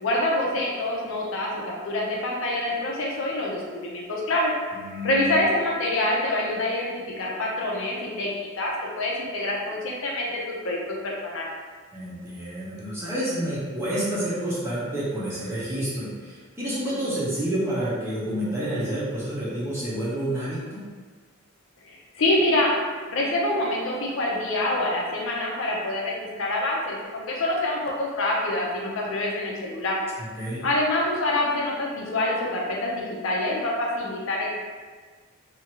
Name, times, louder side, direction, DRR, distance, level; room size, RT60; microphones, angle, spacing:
voice 1, 0.0-4.5 4.9-11.5 21.9-22.7 23.1-30.0 30.6-34.5, left 1 dB, 65° left, -2 dB, 0.5 m, -26 dB
voice 2, 4.7-5.4 11.9-20.8 30.2-30.6, right 1 dB, 10° right, -9 dB, 0.7 m, -29 dB
2.8 x 2.5 x 2.9 m, 1.5 s
head